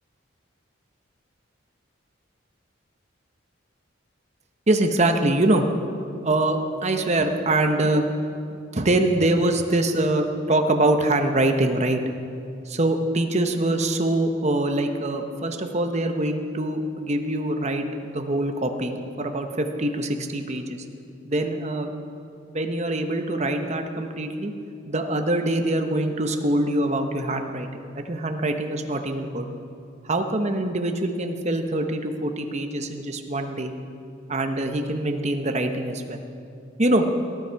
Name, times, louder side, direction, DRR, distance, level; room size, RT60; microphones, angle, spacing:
voice 1, 4.7-5.7 6.2-8.0 8.5-12.0 12.7-20.8 21.3-21.9 22.5-24.5 24.8-29.5 30.0-33.7 34.3-36.2 36.8-37.1, right 1 dB, 35° right, 5 dB, 0.9 m, -24 dB
18.0 x 11.5 x 4.7 m, 2.5 s
head